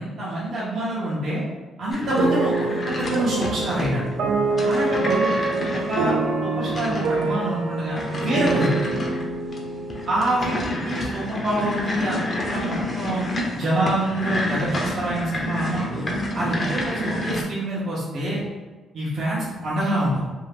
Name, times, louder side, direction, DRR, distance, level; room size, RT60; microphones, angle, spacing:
voice 1, 0.0-1.4 1.8-4.0 4.7-5.3 5.7-6.1 6.4-8.7 10.1-13.2 13.5-16.0 16.3-18.4 18.9-20.3, right 1 dB, 55° right, -8 dB, 0.8 m, -26 dB
sound 1, 1.9-17.4, left 1 dB, 40° left, 0.6 m, -30 dB
sound 2, 2.2-11.3, right 3 dB, 70° right, 0.4 m, -26 dB
2.6 x 2.4 x 3.3 m, 1.3 s
cardioid pair, 90°, 0 cm